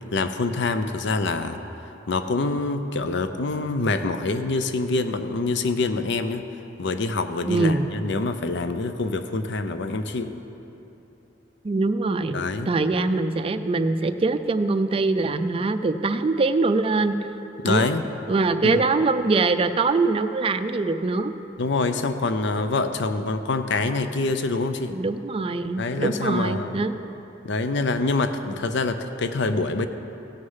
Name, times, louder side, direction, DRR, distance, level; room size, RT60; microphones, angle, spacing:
voice 1, 0.1-1.6 2.1-6.4 6.8-10.3 12.3-12.7 17.6-18.0 18.6-18.9 21.6-25.0 25.8-26.8 27.4-29.9, left 3 dB, 65° left, 9 dB, 0.6 m, -25 dB
voice 2, 7.5-7.9 11.6-17.2 17.6-17.9 18.3-21.3 24.9-26.9, right 3 dB, 30° right, 9 dB, 0.4 m, -23 dB
16.0 x 6.5 x 5.6 m, 2.9 s
head